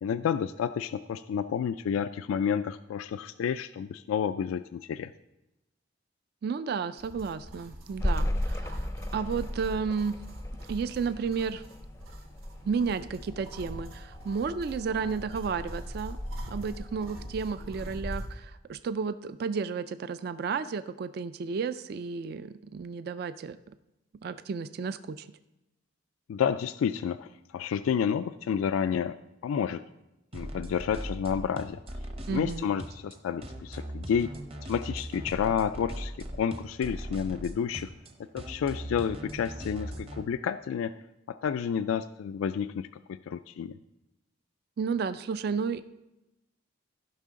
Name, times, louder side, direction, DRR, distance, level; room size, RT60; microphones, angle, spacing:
voice 1, 0.0-5.1 26.3-29.2 29.4-29.8 30.3-32.0 32.3-34.3 34.6-37.9 38.3-40.9 41.3-43.8, left 7 dB, 85° left, 13 dB, 0.3 m, -30 dB
voice 2, 6.4-10.2 10.7-11.6 12.6-16.2 16.5-23.6 24.2-25.3 32.3-32.7 44.8-45.8, right 5 dB, 50° right, 13 dB, 0.3 m, -32 dB
sound 1, 7.0-18.3, equal, 90° right, 1.4 m, -44 dB
sound 2, 8.0-17.3, left 1 dB, 15° left, 0.5 m, -36 dB
sound 3, 30.3-40.2, equal, 30° right, 0.8 m, -39 dB
15.0 x 5.7 x 3.7 m, 0.93 s
head